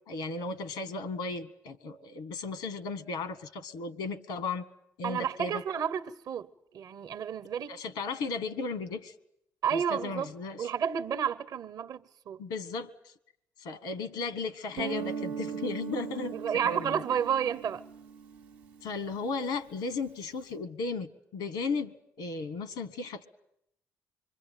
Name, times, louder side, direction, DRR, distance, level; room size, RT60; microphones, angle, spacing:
voice 1, 0.1-4.6 5.0-5.6 7.7-9.1 9.7-10.7 12.4-13.1 13.6-17.0 18.8-23.3, left 4 dB, 90° left, 1.3 m, -35 dB
voice 2, 5.0-7.8 9.6-10.3 10.6-12.4 16.3-17.8, right 8 dB, 65° right, 1.0 m, -31 dB
Guitar, 14.8-19.3, right 6 dB, 90° right, 1.0 m, -39 dB
26.0 x 23.0 x 9.2 m
supercardioid pair, 60°, 7 cm